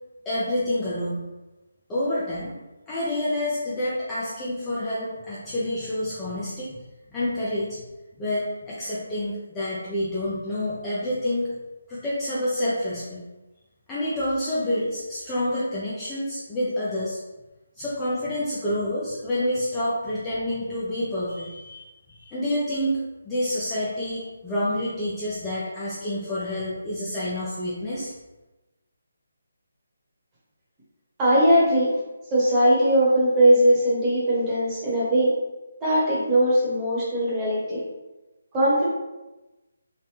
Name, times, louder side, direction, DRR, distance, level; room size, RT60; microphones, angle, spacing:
voice 1, 0.3-1.3 1.9-2.5 2.9-6.8 7.1-7.8 8.2-11.5 11.9-13.2 13.9-17.2 17.8-28.1, left 1 dB, 10° left, -9 dB, 0.5 m, -28 dB
voice 2, 31.2-31.9 32.3-35.3 35.8-37.8 38.5-38.9, right 1 dB, 15° right, -8 dB, 1.0 m, -20 dB
3.2 x 2.1 x 3.3 m, 1.1 s
figure-of-eight pair, 160°, 0 cm